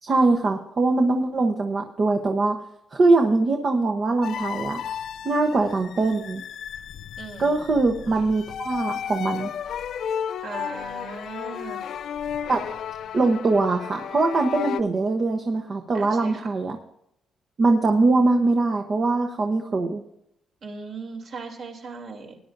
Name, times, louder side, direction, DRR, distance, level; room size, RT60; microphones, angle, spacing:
voice 1, 0.0-2.6 2.9-5.0 5.2-6.4 7.4-9.5 12.5-12.8 13.1-16.8 17.6-20.0, right 3 dB, 35° right, 3 dB, 1.0 m, -22 dB
sound 1, 4.2-14.8, left 8 dB, 60° left, 0.4 m, -33 dB
voice 2, 7.2-7.6 10.4-11.8 15.9-16.5 20.6-22.4, right 4 dB, 50° right, 1 dB, 2.9 m, -38 dB
19.0 x 10.5 x 2.6 m, 0.79 s
cardioid pair, 160°, 0 cm